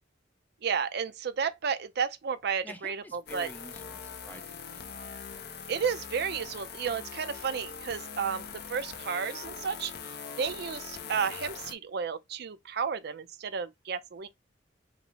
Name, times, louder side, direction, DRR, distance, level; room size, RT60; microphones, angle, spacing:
voice 1, 0.6-3.5 5.7-9.9 10.4-14.3, right 6 dB, 60° right, 0.5 m, -32 dB
voice 2, 2.6-4.8, left 1 dB, 10° left, 0.7 m, -48 dB
sound 1, 3.3-11.7, left 6 dB, 55° left, 0.6 m, -42 dB
5.1 x 2.0 x 4.6 m
head